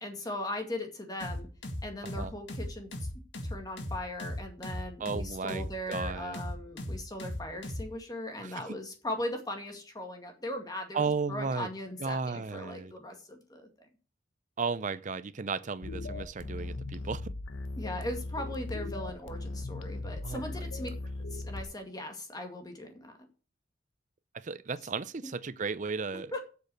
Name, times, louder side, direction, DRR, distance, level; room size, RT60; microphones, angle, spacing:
voice 1, 0.0-1.5 1.8-3.1 3.4-11.0 11.3-13.7 17.8-20.9 21.3-23.3 26.3-26.4, left 1 dB, 20° left, 2.1 m, -39 dB
sound 1, 1.2-7.9, left 1 dB, 70° left, 2.0 m, -38 dB
voice 2, 5.0-6.4 8.4-8.6 10.9-11.7 12.0-12.9 14.6-17.3 20.2-20.6 24.3-26.3, right 4 dB, 40° right, 0.6 m, -34 dB
sound 2, 15.8-21.6, left 2 dB, 90° left, 1.1 m, -38 dB
8.2 x 6.6 x 7.8 m
head